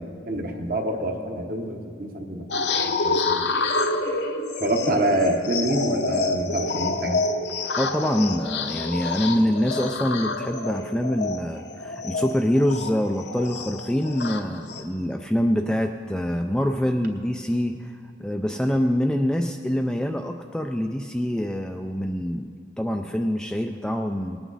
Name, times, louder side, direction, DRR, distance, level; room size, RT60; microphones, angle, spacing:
voice 1, 0.0-2.5 3.0-3.5 4.6-7.2, right 1 dB, 45° right, 3 dB, 1.1 m, -26 dB
sound 1, 2.5-14.8, left 3 dB, 65° left, 0.8 m, -28 dB
voice 2, 7.8-24.4, equal, 5° left, 4 dB, 0.3 m, -25 dB
19.5 x 9.1 x 4.1 m, 2.2 s
head